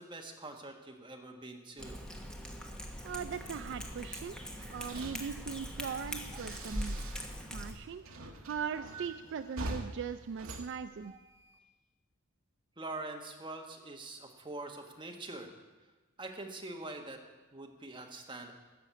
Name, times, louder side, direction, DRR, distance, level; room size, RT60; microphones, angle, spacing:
voice 1, 0.0-2.0 6.3-6.4 8.9-9.1 11.0-11.2 12.8-15.5 16.2-17.2 17.5-18.5, right 2 dB, 20° right, 2 dB, 1.3 m, -44 dB
Cat, 1.8-7.7, equal, 5° left, 1.0 m, -41 dB
voice 2, 3.0-4.4 4.7-7.0 7.5-8.0 8.4-11.1, right 6 dB, 55° right, 11 dB, 0.3 m, -39 dB
sound 1, 4.5-7.4 7.7-11.6, right 2 dB, 75° right, 1.1 m, -46 dB
13.5 x 6.0 x 8.2 m, 1.2 s
head